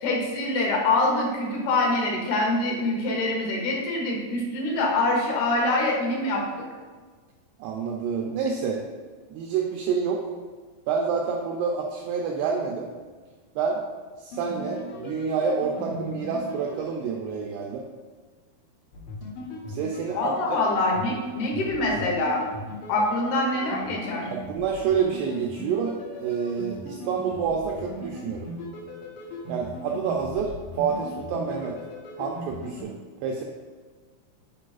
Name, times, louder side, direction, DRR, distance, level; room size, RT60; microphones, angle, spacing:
voice 1, 0.0-6.7 20.1-22.4 22.9-24.3, left 2 dB, 70° left, -1 dB, 2.6 m, -25 dB
voice 2, 7.6-8.8 9.3-10.3 10.9-12.9 13.6-13.8 14.2-17.8 19.7-20.6 24.3-28.5 29.5-31.8 32.2-32.9 33.2-33.4, right 6 dB, 85° right, 0 dB, 2.3 m, -28 dB
sound 1, 14.3-17.7 18.9-32.8, left 1 dB, 90° left, 3.9 m, -38 dB
9.8 x 4.7 x 2.4 m, 1.4 s
omnidirectional pair, 5.2 m